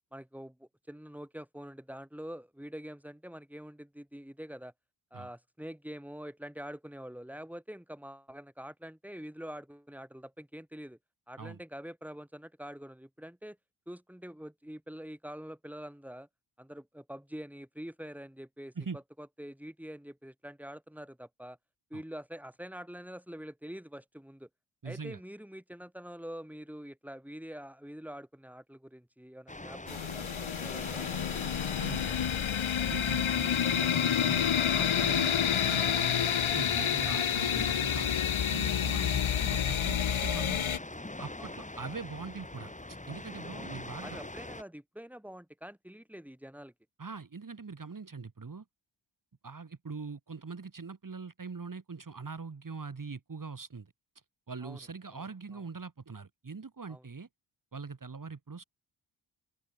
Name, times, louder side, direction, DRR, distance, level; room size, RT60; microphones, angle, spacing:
voice 1, 0.1-4.7 5.1-11.0 11.3-13.6 13.9-16.3 16.6-21.6 21.9-24.5 24.8-31.1 41.4-41.5 43.5-43.7 44.0-46.7 54.6-54.8 55.1-55.3 55.5-55.6 56.9-57.1, equal, 5° right, 7.2 m, -45 dB
voice 2, 24.8-25.2 31.5-32.2 32.9-34.4 34.7-36.2 36.5-40.6 41.2-44.2 47.0-48.7 49.4-53.9 54.5-57.3 57.7-58.6, right 4 dB, 40° right, 3.5 m, -42 dB
sound 1, 29.5-44.6, left 2 dB, 15° left, 5.0 m, -43 dB
sound 2, 29.9-40.8, left 8 dB, 80° left, 2.6 m, -29 dB
open air
cardioid pair, 75°, 47 cm